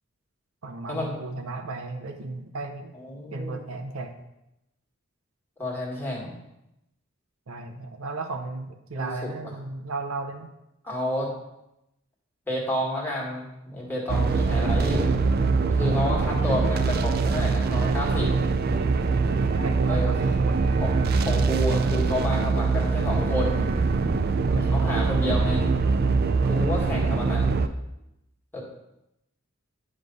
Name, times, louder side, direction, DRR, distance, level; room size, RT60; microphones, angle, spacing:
voice 1, 0.6-2.9 3.3-4.2 7.5-10.5 14.4-14.7 19.5-20.7 24.5-24.7 26.7-26.9, right 3 dB, 85° right, 3 dB, 0.7 m, -35 dB
voice 2, 3.0-3.6 5.6-6.3 8.9-9.1 9.4-9.5 10.8-11.3 12.5-15.1 15.7-18.3 19.9-20.1 20.8-20.9 21.2-23.7 24.5-25.7 26.4-27.5 28.5-28.6, left 1 dB, 10° left, -4 dB, 1.8 m, -30 dB
sound 1, 14.1-27.7, right 4 dB, 50° right, 0.4 m, -23 dB
9.5 x 3.3 x 5.2 m, 0.88 s
head